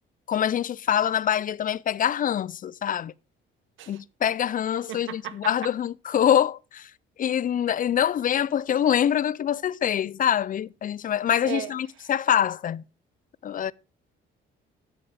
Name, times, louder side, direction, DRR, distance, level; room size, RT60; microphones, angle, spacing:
voice 1, 0.3-3.1 3.9-6.9 7.2-12.8 13.4-13.7, left 9 dB, 45° left, 0.4 m, -25 dB
voice 2, 4.9-5.4 11.4-11.7, right 11 dB, 80° right, 1.0 m, -35 dB
15.5 x 5.8 x 3.3 m
cardioid pair, 90°, 20 cm